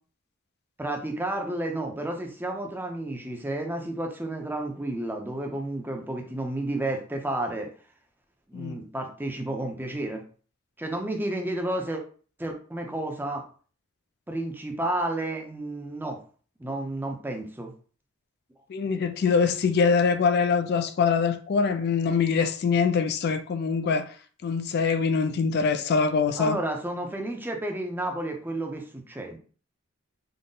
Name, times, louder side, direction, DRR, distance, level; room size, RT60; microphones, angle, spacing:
voice 1, 0.8-7.7 8.5-10.2 10.8-12.0 12.4-13.4 14.3-16.2 16.6-17.7 26.4-29.4, right 1 dB, 10° right, 0.5 m, -31 dB
voice 2, 18.7-24.1 24.4-26.6, left 5 dB, 50° left, 0.3 m, -24 dB
3.8 x 2.0 x 3.7 m
head